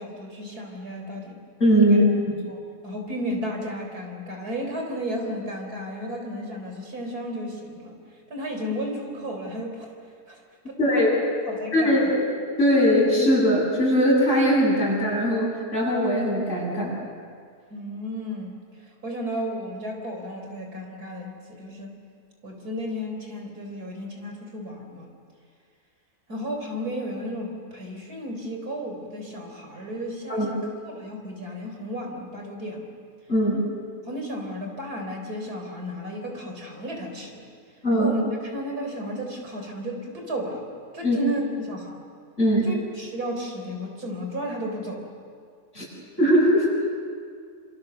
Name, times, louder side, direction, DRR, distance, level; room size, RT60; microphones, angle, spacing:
voice 1, 0.0-1.4 1.8-2.0 2.5-8.0 8.3-9.9 10.3-11.1 11.5-12.1 17.7-18.6 19.0-21.9 22.4-25.1 26.3-30.6 30.9-32.9 34.0-37.4 37.9-38.2 38.5-40.6 40.9-42.0 42.6-45.0, equal, 70° right, 2 dB, 4.5 m, -33 dB
voice 2, 1.6-2.4 10.8-11.1 11.7-12.2 12.6-16.9 30.3-30.5 33.3-33.6 37.8-38.1 41.0-41.2 42.4-42.7 45.7-45.9 46.2-46.7, equal, 50° left, -4 dB, 8.5 m, -20 dB
28.0 x 27.5 x 6.9 m, 2.1 s
omnidirectional pair, 1.7 m